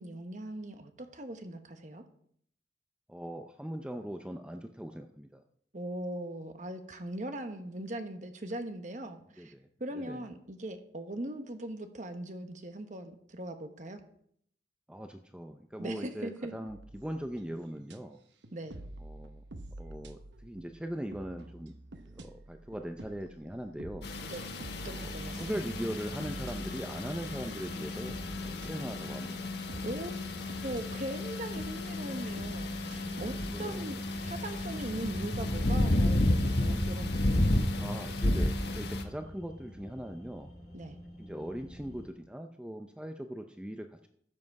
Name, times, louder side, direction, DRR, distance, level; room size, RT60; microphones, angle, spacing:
voice 1, 0.0-2.0 5.7-9.5 9.8-14.0 15.8-16.5 18.5-18.8 24.2-24.5 24.8-25.6 29.8-30.1 30.6-37.6 40.7-41.0, right 1 dB, 45° right, 7 dB, 1.1 m, -40 dB
voice 2, 3.1-5.4 9.4-9.7 9.9-10.3 14.9-18.2 19.0-19.4 19.8-21.8 22.1-24.1 24.9-25.1 25.4-28.1 28.4-29.5 33.5-33.9 37.8-40.5 41.2-44.1, equal, 5° right, 6 dB, 0.5 m, -40 dB
sound 1, 16.7-18.0 18.4-33.8, right 1 dB, 85° right, 1.0 m, -48 dB
sound 2, 24.0-39.0, left 1 dB, 65° left, 1.3 m, -32 dB
sound 3, 25.2-42.1, equal, 20° left, 4.2 m, -48 dB
13.0 x 7.6 x 4.7 m, 0.67 s
head